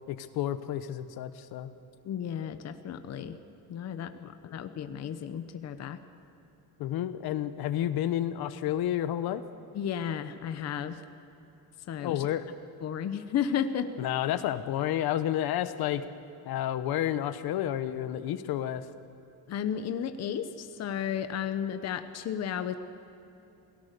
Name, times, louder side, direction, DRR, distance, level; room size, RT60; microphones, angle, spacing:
voice 1, 0.1-1.7 6.8-9.4 12.0-12.5 14.0-16.0 16.4-18.8, left 11 dB, 70° left, 12 dB, 1.0 m, -30 dB
voice 2, 2.0-3.4 3.7-6.0 9.7-11.0 11.9-12.3 12.8-13.9 19.5-22.7, left 8 dB, 45° left, 9 dB, 0.9 m, -33 dB
28.0 x 18.0 x 6.8 m, 2.9 s
cardioid pair, 180°, 38 cm